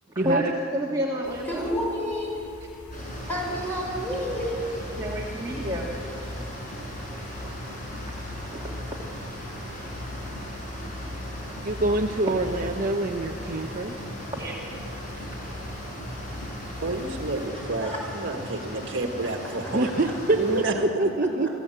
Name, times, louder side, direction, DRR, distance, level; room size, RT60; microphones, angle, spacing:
voice 1, 0.1-1.7 5.0-5.9 8.5-8.7 11.9-12.0 14.3-14.7, equal, 15° right, -4 dB, 1.8 m, -30 dB
sound 1, 1.2-17.5, left 2 dB, 85° left, 2.0 m, -41 dB
voice 2, 1.4-2.4 3.3-4.7 17.5-18.0 19.6-19.7, equal, 10° left, -3 dB, 5.8 m, -30 dB
sound 2, 2.9-20.6, equal, 35° left, 6.8 m, -38 dB
voice 3, 11.6-13.9 19.7-21.5, right 2 dB, 35° right, 3 dB, 0.8 m, -25 dB
voice 4, 16.8-19.9 20.4-20.9, right 2 dB, 55° right, 3 dB, 1.7 m, -29 dB
25.0 x 15.5 x 7.8 m, 2.6 s
head